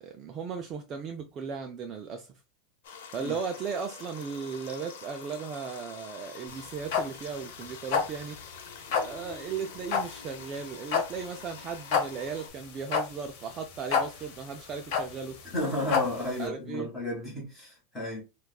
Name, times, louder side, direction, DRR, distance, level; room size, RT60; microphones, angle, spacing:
voice 1, 0.0-2.3 3.1-8.4 8.9-15.4 16.4-16.9, right 6 dB, 25° right, 0.3 m, -36 dB
sound 1, 2.8-12.5, left 6 dB, 80° left, 0.8 m, -47 dB
sound 2, 6.5-16.4, left 6 dB, 45° left, 0.9 m, -31 dB
voice 2, 15.4-18.2, left 2 dB, 10° left, 1.7 m, -32 dB
4.7 x 2.3 x 2.2 m
supercardioid pair, 175°, 0 cm